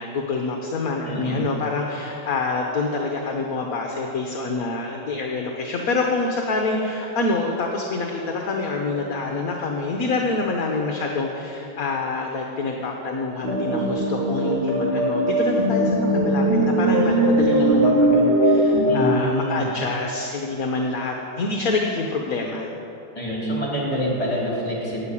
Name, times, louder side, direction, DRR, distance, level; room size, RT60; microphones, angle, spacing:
voice 1, 0.0-22.7, left 3 dB, 50° left, 1 dB, 1.3 m, -26 dB
voice 2, 1.1-1.5 18.9-19.7 23.2-25.1, equal, 15° left, -5 dB, 3.7 m, -26 dB
sound 1, 13.4-18.9, right 1 dB, 85° right, 3.2 m, -20 dB
16.0 x 5.8 x 9.9 m, 3.0 s
omnidirectional pair, 2.3 m